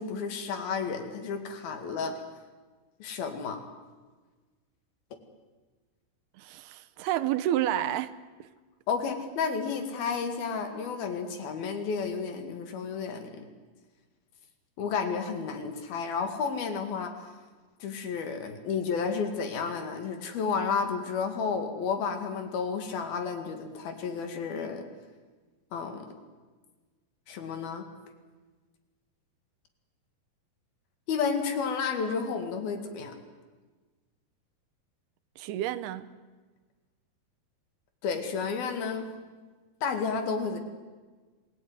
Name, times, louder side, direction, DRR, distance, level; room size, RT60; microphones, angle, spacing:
voice 1, 0.0-2.1 3.0-3.6 8.9-13.4 14.8-17.1 17.8-24.8 25.7-26.1 27.3-27.8 31.1-33.2 38.0-39.1 39.8-40.6, left 5 dB, 70° left, 6 dB, 4.0 m, -31 dB
voice 2, 6.4-8.1 35.4-36.1, right 12 dB, 80° right, 13 dB, 2.8 m, -29 dB
26.5 x 17.5 x 9.6 m, 1.4 s
omnidirectional pair, 4.6 m